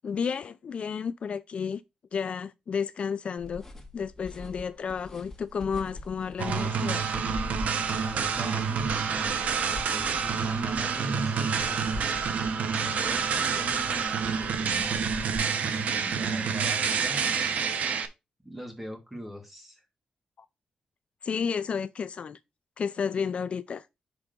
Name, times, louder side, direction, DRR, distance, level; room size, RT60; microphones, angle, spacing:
voice 1, 0.0-1.8 2.1-3.6 3.9-7.0 20.4-20.5 21.2-22.4 22.8-23.9, left 6 dB, 50° left, 0.3 m, -32 dB
sound 1, 3.4-15.4, left 2 dB, 15° left, 2.0 m, -43 dB
sound 2, 6.4-18.1, right 6 dB, 75° right, 0.8 m, -28 dB
voice 2, 8.0-12.2 12.8-17.2 18.4-19.8, equal, 10° right, 1.9 m, -41 dB
6.0 x 3.5 x 5.1 m
wide cardioid pair, 125°, 2 cm